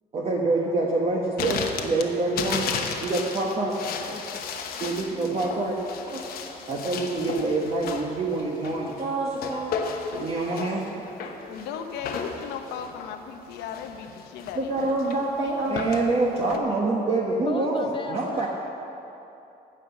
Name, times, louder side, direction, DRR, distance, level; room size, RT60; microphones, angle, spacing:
voice 1, 0.1-2.7 3.0-3.8 4.8-5.8 6.1-9.7 10.2-11.3 14.5-18.5, right 2 dB, 35° right, -2 dB, 1.3 m, -26 dB
sound 1, 1.4-16.6, left 6 dB, 65° left, 1.1 m, -34 dB
voice 2, 2.4-3.1 3.4-3.5 3.9-4.2 4.6-5.5 17.4-18.5, left 4 dB, 30° left, 7 dB, 0.8 m, -38 dB
voice 3, 11.5-15.3, left 7 dB, 90° left, 6 dB, 0.9 m, -37 dB
15.0 x 5.8 x 7.1 m, 2.9 s
cardioid pair, 110°, 17 cm